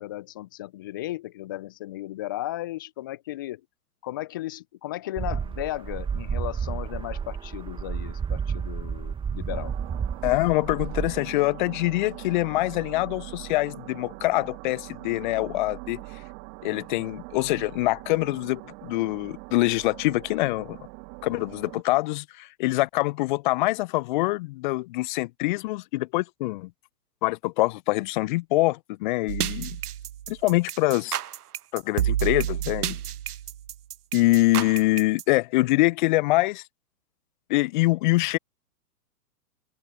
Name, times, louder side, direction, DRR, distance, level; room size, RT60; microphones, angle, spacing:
voice 1, 0.0-3.6 4.0-9.7, left 15 dB, 15° left, 0.4 m, -35 dB
sound 1, 5.2-11.2, right 7 dB, 10° right, 1.6 m, -31 dB
sound 2, 9.5-21.8, right 34 dB, 30° right, 2.0 m, -42 dB
voice 2, 10.2-16.0 16.6-20.8 21.2-26.7 27.2-29.8 30.3-31.2 31.7-33.0 34.1-36.6 37.5-38.4, left 20 dB, 30° left, 0.8 m, -24 dB
sound 3, 29.3-35.2, right 11 dB, 70° right, 0.6 m, -30 dB
figure-of-eight pair, 115°, 47 cm